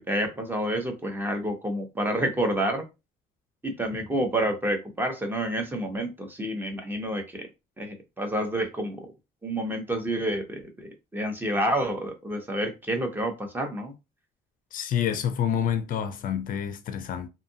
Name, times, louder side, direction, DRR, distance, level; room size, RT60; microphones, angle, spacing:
voice 1, 0.1-2.8 3.6-7.5 7.8-9.0 9.4-13.9, right 1 dB, 10° right, 0.8 m, -29 dB
voice 2, 14.7-17.3, left 9 dB, 55° left, 0.4 m, -28 dB
2.7 x 2.4 x 2.7 m
cardioid pair, 110°, 17 cm